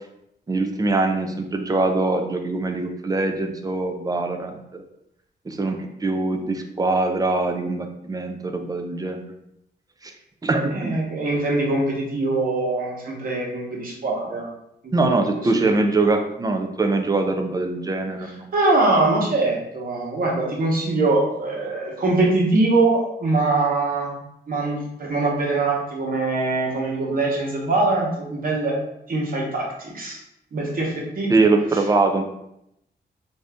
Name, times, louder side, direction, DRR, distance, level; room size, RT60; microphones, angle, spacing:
voice 1, 0.5-4.8 5.5-9.3 10.0-10.1 10.4-11.0 14.9-18.4 31.3-32.2, right 3 dB, 20° right, 5 dB, 0.4 m, -23 dB
voice 2, 10.7-14.5 14.8-15.3 15.5-15.7 18.2-24.2 24.5-28.8 29.1-30.2 30.5-31.3, right 2 dB, 50° right, -2 dB, 1.1 m, -23 dB
3.7 x 2.6 x 3.4 m, 0.80 s
wide cardioid pair, 175°, 18 cm